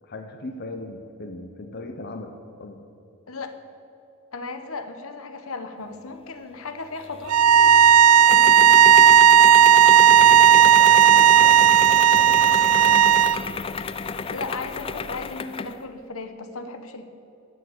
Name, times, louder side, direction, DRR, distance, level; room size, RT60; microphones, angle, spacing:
voice 1, 0.0-2.8 10.1-13.1, left 2 dB, 45° left, 5 dB, 0.8 m, -38 dB
voice 2, 4.3-8.7 14.3-17.0, left 3 dB, 75° left, 8 dB, 1.0 m, -36 dB
sound 1, 7.0-15.8, left 5 dB, 25° left, 0.3 m, -32 dB
sound 2, 7.3-13.4, right 9 dB, 90° right, 0.4 m, -14 dB
12.5 x 6.8 x 8.5 m, 2.7 s
head